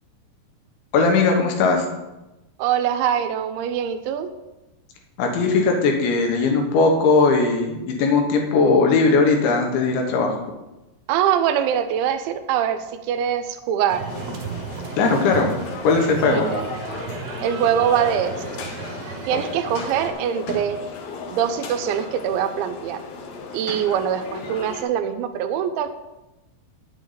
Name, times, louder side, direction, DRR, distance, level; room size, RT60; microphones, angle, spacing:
voice 1, 0.9-1.9 5.2-10.4 15.0-15.5 15.8-16.5, left 4 dB, 85° left, 2 dB, 3.7 m, -19 dB
voice 2, 2.6-4.3 11.1-14.1 16.3-16.8 17.4-18.7 19.3-20.8 21.3-23.0 23.5-25.9, right 9 dB, 85° right, 9 dB, 3.1 m, -23 dB
sound 1, 13.9-20.1, right 6 dB, 65° right, 2.9 m, -34 dB
sound 2, 14.1-24.8, left 4 dB, 70° left, 2.5 m, -35 dB
9.8 x 8.0 x 4.0 m, 1.0 s
omnidirectional pair, 5.2 m